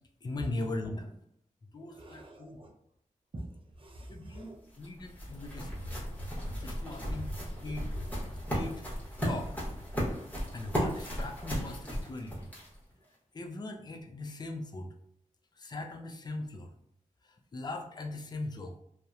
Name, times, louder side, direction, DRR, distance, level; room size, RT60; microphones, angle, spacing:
voice 1, 0.2-1.2 1.7-2.6 4.1-5.8 6.6-7.3 7.6-7.9 8.5-8.8 9.2-9.5 10.5-12.5 13.3-14.9 15.6-16.7 17.5-18.8, left 2 dB, 30° left, 4 dB, 0.3 m, -39 dB
voice 2, 1.8-2.7 3.3-4.6 6.8-8.2 8.6-8.7, right 1 dB, 40° right, 0 dB, 0.5 m, -49 dB
sound 1, 4.4-12.9, equal, 10° left, 0.9 m, -36 dB
2.8 x 2.0 x 2.3 m, 0.74 s
wide cardioid pair, 105°, 14 cm